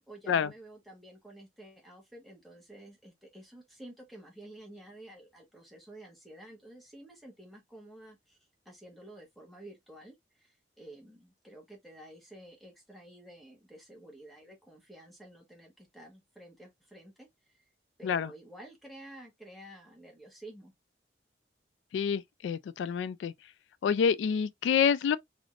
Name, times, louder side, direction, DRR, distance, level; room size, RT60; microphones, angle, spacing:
voice 1, 0.0-8.4 8.6-17.6 18.0-20.7, right 1 dB, ahead, 1.2 m, -51 dB
voice 2, 21.9-23.3 23.8-25.2, left 7 dB, 85° left, 0.3 m, -27 dB
3.6 x 3.4 x 2.4 m
head